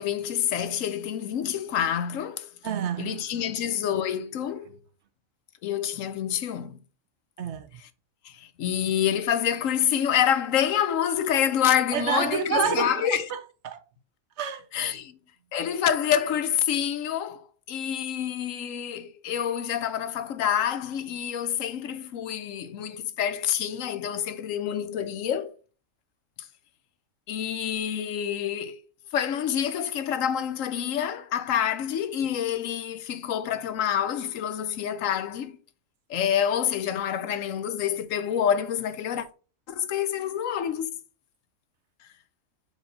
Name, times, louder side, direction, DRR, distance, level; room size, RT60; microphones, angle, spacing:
voice 1, 0.0-2.5 3.0-4.7 5.6-6.8 8.2-13.3 14.7-15.2 15.5-25.5 27.3-28.8 29.1-35.6 36.1-39.3 39.7-40.9, left 9 dB, 80° left, 1.1 m, -27 dB
voice 2, 2.6-3.5 7.4-7.8 11.9-13.8 14.4-14.7, right 8 dB, 65° right, 0.9 m, -29 dB
4.8 x 4.1 x 5.2 m
omnidirectional pair, 1.4 m